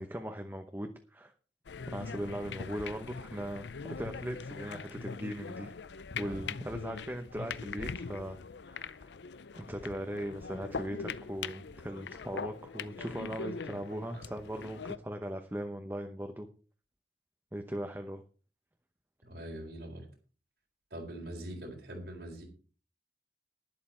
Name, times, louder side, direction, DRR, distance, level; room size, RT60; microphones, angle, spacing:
voice 1, 0.0-1.3 1.9-5.7 6.1-8.4 8.7-9.1 9.5-16.5 17.5-18.2, equal, 10° right, 5 dB, 0.9 m, -39 dB
sound 1, 1.7-15.0, left 5 dB, 80° left, 0.6 m, -42 dB
voice 2, 19.2-20.1 20.9-22.4, right 1 dB, 75° right, 0 dB, 4.1 m, -43 dB
11.5 x 11.0 x 4.4 m, 0.38 s
head